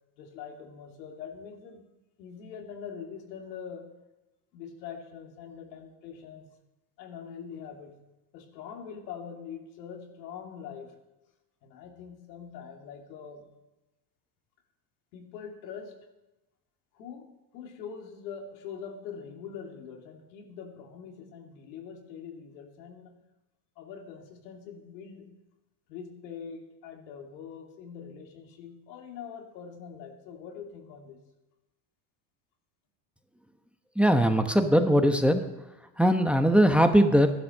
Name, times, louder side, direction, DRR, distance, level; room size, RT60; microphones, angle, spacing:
voice 1, 0.2-1.9 2.2-3.9 4.5-6.5 7.0-8.0 8.3-11.0 11.6-13.5 15.1-16.0 16.9-23.2 23.8-25.3 25.9-31.2, left 7 dB, 90° left, 3 dB, 2.8 m, -43 dB
voice 2, 34.0-35.4 36.0-37.3, equal, ahead, 7 dB, 1.0 m, -21 dB
14.0 x 11.0 x 6.6 m, 1.0 s
supercardioid pair, 110°, 50 cm